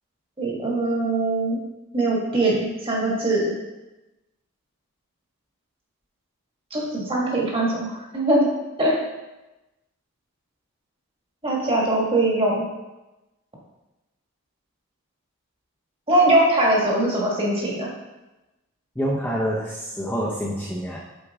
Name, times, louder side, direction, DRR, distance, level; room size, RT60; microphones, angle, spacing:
voice 1, 0.4-1.6 1.9-3.5 6.7-8.5 8.8-8.9 11.4-12.6 16.1-17.9, right 1 dB, 25° right, -3 dB, 1.6 m, -21 dB
voice 2, 19.0-21.0, equal, 10° left, -5 dB, 0.7 m, -27 dB
7.9 x 4.7 x 3.6 m, 1.0 s
head